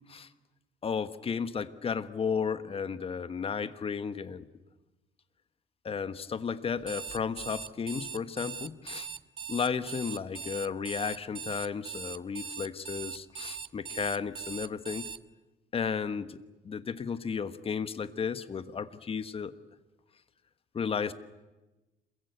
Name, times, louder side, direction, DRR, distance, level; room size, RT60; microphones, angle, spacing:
voice 1, 0.8-4.5 5.8-9.1 9.5-15.1 15.7-16.4 16.6-19.5 20.7-21.1, left 6 dB, 35° left, 12 dB, 1.4 m, -33 dB
Alarm, 6.8-15.2, right 6 dB, 30° right, 0.8 m, -40 dB
27.5 x 22.5 x 8.2 m, 1.1 s
cardioid pair, 110°, 17 cm